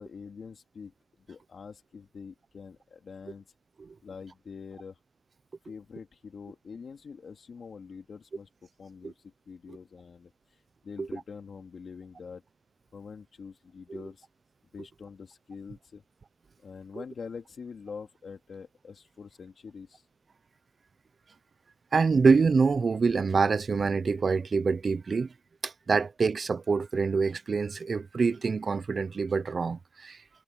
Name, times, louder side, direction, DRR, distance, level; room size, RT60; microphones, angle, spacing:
voice 1, 0.0-3.4 4.0-5.0 5.6-12.4 12.9-14.3 14.7-16.0 16.6-20.1, left 5 dB, 70° left, 2.6 m, -45 dB
voice 2, 21.9-25.3 25.6-30.2, right 4 dB, 55° right, 0.7 m, -26 dB
wide cardioid pair, 90°, 0 cm